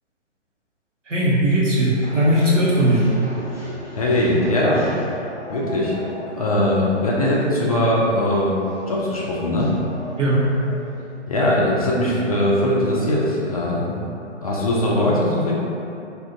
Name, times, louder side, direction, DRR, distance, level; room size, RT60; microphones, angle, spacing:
voice 1, 1.1-3.1 10.2-10.5, right 1 dB, 85° right, -6 dB, 1.1 m, -18 dB
sound 1, 1.9-11.2, equal, 10° right, 0.9 m, -38 dB
voice 2, 4.0-4.9 5.5-6.1 6.3-8.5 8.9-9.8 11.3-14.1 14.4-15.5, left 1 dB, 35° left, -5 dB, 0.4 m, -20 dB
2.6 x 2.4 x 3.7 m, 2.7 s
figure-of-eight pair, 130°, 36 cm